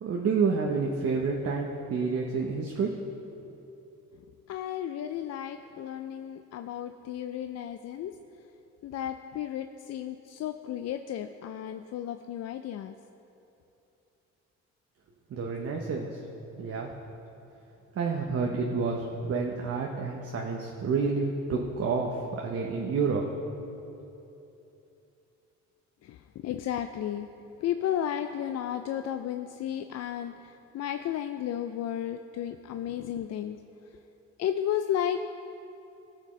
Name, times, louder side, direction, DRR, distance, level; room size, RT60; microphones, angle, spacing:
voice 1, 0.0-2.9 15.3-16.2 16.6-16.9 18.0-23.2, right 4 dB, 50° right, 0 dB, 0.9 m, -29 dB
voice 2, 4.5-8.1 8.8-13.0 26.0-27.3 27.6-33.6 34.4-35.3, left 10 dB, 60° left, 8 dB, 0.4 m, -33 dB
17.5 x 6.6 x 3.2 m, 2.9 s
cardioid pair, 90°, 30 cm